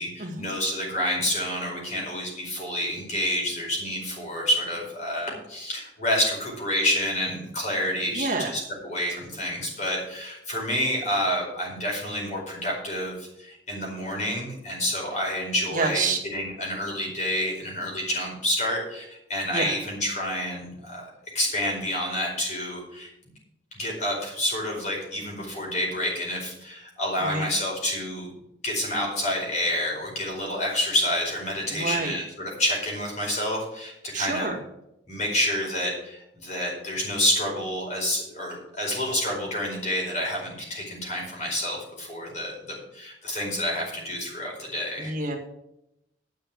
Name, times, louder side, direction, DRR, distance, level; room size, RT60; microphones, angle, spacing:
voice 1, 0.0-21.1 21.3-23.1 23.7-28.3 28.6-34.5 35.1-42.5 42.9-45.1, left 1 dB, 40° left, -1 dB, 4.7 m, -28 dB
voice 2, 8.1-8.5 15.7-16.2 19.5-19.8 27.2-27.5 31.7-32.1 34.1-34.6 45.0-45.4, right 3 dB, 45° right, 1 dB, 1.7 m, -28 dB
10.5 x 6.4 x 8.2 m, 0.82 s
head